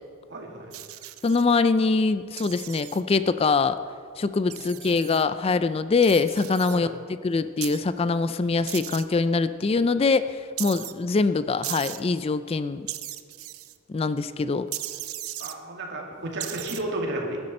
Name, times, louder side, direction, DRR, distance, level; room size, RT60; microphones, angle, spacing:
voice 1, 0.3-0.7 4.5-5.3 6.7-7.0 9.7-9.8 15.4-17.4, right 1 dB, 55° right, 0 dB, 2.5 m, -34 dB
sound 1, 0.7-1.4 2.4-3.0 4.5-5.2 6.0-6.8 7.6-7.8 8.7-9.0 10.6-10.9 11.6-12.0 12.9-13.8 14.7-15.5 16.4-16.8, right 14 dB, 85° right, 0.6 m, -36 dB
voice 2, 1.2-3.8 4.2-6.9 7.2-12.9 13.9-14.7, left 4 dB, 25° left, 13 dB, 0.3 m, -23 dB
20.0 x 10.5 x 4.3 m, 2.1 s
head